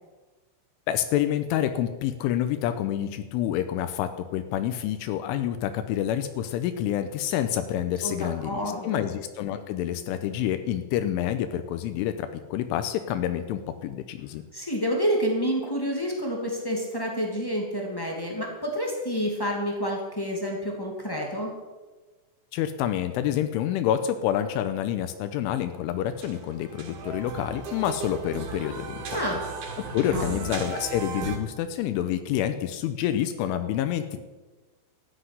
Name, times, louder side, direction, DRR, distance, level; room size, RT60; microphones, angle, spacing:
voice 1, 0.9-14.4 22.5-29.2 29.8-34.2, left 11 dB, 85° left, 9 dB, 3.2 m, -28 dB
voice 2, 8.0-9.0 14.5-21.5 29.1-29.4 30.0-30.4, equal, 35° left, -1 dB, 0.3 m, -29 dB
sound 1, 25.9-31.4, right 5 dB, 55° right, 4.0 m, -36 dB
14.0 x 10.0 x 9.8 m, 1.3 s
omnidirectional pair, 5.6 m